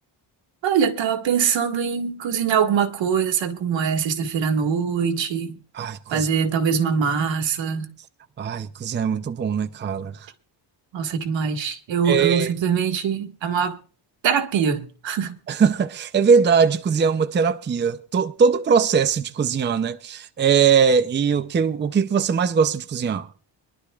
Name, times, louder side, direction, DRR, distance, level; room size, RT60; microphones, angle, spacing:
voice 1, 0.6-5.6 6.1-7.9 10.9-13.8 14.2-15.3, right 7 dB, 80° right, 1.8 m, -23 dB
voice 2, 5.7-6.3 8.4-10.3 12.0-12.5 15.5-23.3, right 6 dB, 25° right, 0.6 m, -21 dB
25.0 x 11.5 x 2.4 m
cardioid pair, 130°, 44 cm